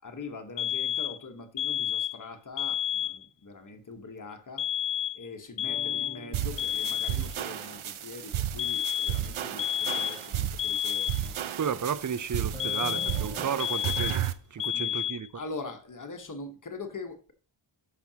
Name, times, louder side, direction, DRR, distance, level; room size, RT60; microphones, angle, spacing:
voice 1, 0.0-4.7 5.1-11.4 14.6-15.1 15.3-17.3, left 3 dB, 40° left, 1.2 m, -42 dB
sound 1, 0.6-1.2 1.6-2.2 2.6-3.2 4.6-5.3 5.6-6.2 6.6-7.2 8.6-9.2 9.6-10.3 10.6-11.3 12.6-13.3 13.6-14.3 14.6-15.3, left 10 dB, 60° left, 0.6 m, -30 dB
sound 2, 5.6-8.2 12.5-14.3, right 1 dB, ahead, 4.3 m, -45 dB
sound 3, 6.3-14.3, right 11 dB, 75° right, 0.7 m, -33 dB
voice 2, 11.6-14.2 14.5-15.3, right 7 dB, 40° right, 0.6 m, -32 dB
13.0 x 6.0 x 2.8 m
wide cardioid pair, 125°, 50 cm